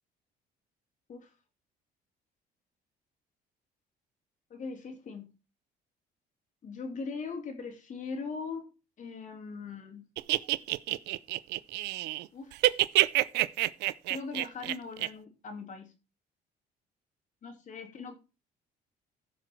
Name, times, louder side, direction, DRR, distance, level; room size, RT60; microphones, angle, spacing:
voice 1, 4.5-5.3 6.6-8.7 9.0-10.1 12.3-12.6 14.1-15.9 17.4-18.2, left 4 dB, 50° left, 2.7 m, -40 dB
sound 1, 10.2-12.3 12.5-15.1, right 17 dB, 85° right, 0.6 m, -27 dB
14.5 x 6.4 x 4.5 m
cardioid pair, 110°, 17 cm